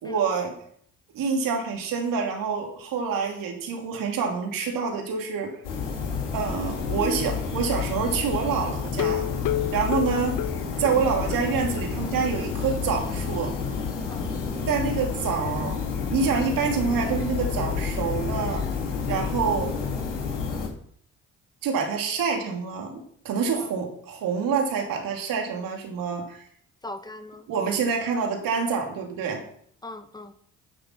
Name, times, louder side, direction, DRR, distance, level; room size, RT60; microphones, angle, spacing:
voice 1, 0.0-0.6 1.1-5.5 6.3-9.2 9.7-10.4 10.8-13.5 14.7-15.8 16.1-18.6 19.1-19.8 21.6-26.4 27.5-29.4, right 5 dB, 70° right, 2 dB, 2.9 m, -27 dB
sound 1, 5.6-20.7, left 5 dB, 90° left, 3.0 m, -30 dB
sound 2, 8.9-11.5 11.8-11.9 12.2-12.3 12.7-12.8, left 13 dB, 65° left, 0.6 m, -30 dB
voice 2, 26.8-27.5 29.8-30.3, left 2 dB, 10° left, 8 dB, 1.8 m, -40 dB
11.5 x 6.8 x 5.9 m, 0.64 s
hypercardioid pair, 50°, 35 cm